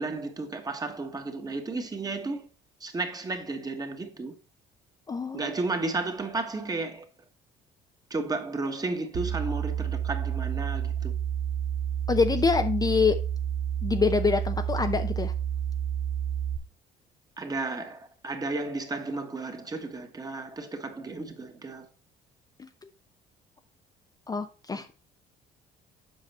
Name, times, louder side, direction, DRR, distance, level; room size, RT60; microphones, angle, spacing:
voice 1, 0.0-2.5 2.8-4.3 5.3-7.0 8.1-11.1 17.4-21.9 24.7-24.8, right 3 dB, 20° right, 1.4 m, -33 dB
voice 2, 5.1-5.5 12.1-13.2 13.8-15.3 22.6-22.7 24.3-24.9, left 5 dB, 20° left, 0.6 m, -25 dB
sound 1, 9.1-16.6, right 9 dB, 60° right, 0.9 m, -30 dB
7.5 x 5.1 x 4.2 m
cardioid pair, 110°, 17 cm